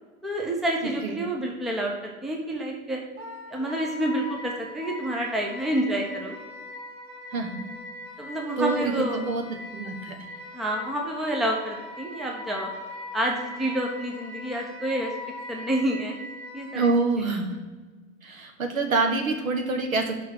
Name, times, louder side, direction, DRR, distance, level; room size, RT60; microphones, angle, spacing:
voice 1, 0.2-3.0 3.5-6.4 8.2-9.2 10.5-12.7 13.1-15.1 15.5-16.2 16.5-16.9, right 1 dB, ahead, -1 dB, 0.5 m, -28 dB
Wind instrument woodwind instrument, 3.2-16.9, left 2 dB, 25° right, 1.5 m, -40 dB
voice 2, 7.3-7.7 8.6-9.4 9.7-10.2 16.7-17.6 18.2-20.2, right 3 dB, 75° right, 3 dB, 1.3 m, -26 dB
5.5 x 4.6 x 6.2 m, 1.3 s
figure-of-eight pair, 105°, 42 cm